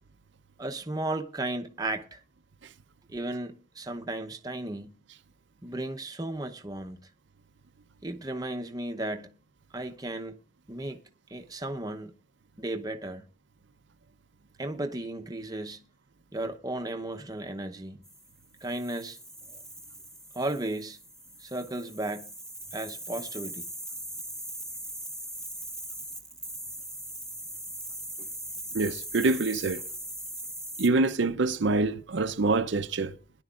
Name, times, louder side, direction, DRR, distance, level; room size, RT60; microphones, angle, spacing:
voice 1, 0.6-2.2 3.1-4.9 5.6-7.0 8.0-9.3 9.7-10.4 10.7-11.0 11.3-12.1 12.6-13.2 14.6-15.8 16.3-18.0 18.6-19.2 20.3-21.0 21.4-22.3 22.7-23.7, right 1 dB, 20° right, 0.7 m, -34 dB
sound 1, 18.0-30.9, right 1 dB, 5° left, 1.1 m, -40 dB
voice 2, 28.7-29.8 30.8-33.1, right 3 dB, 65° right, 0.6 m, -25 dB
21.5 x 10.5 x 2.4 m
head